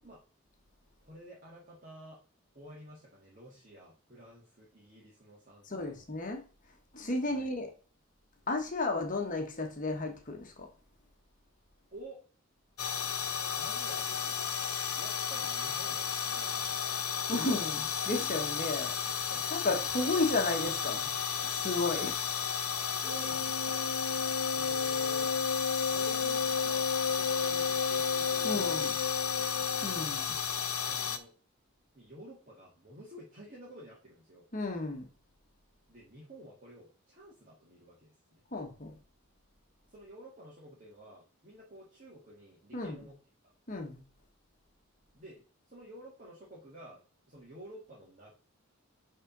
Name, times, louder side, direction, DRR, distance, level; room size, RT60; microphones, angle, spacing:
voice 1, 1.0-2.2 2.5-6.0 7.3-7.5 11.9-12.2 13.6-17.5 19.3-20.2 23.0-23.9 24.5-25.3 25.8-28.8 29.3-29.5 30.8-31.3 31.9-34.4 35.9-38.4 39.9-43.2 45.1-48.3, right 1 dB, 35° right, 1.9 m, -51 dB
voice 2, 5.6-6.4 6.9-7.7 8.5-10.7 17.3-21.1 21.4-22.2 28.4-28.9 29.8-30.4 34.5-35.1 38.5-38.9 42.7-43.1 43.7-44.0, left 2 dB, 40° left, 1.3 m, -33 dB
sound 1, 12.8-31.2, left 7 dB, 85° left, 1.0 m, -33 dB
Wind instrument woodwind instrument, 23.0-30.1, left 4 dB, 55° left, 0.8 m, -33 dB
6.7 x 3.7 x 6.0 m
head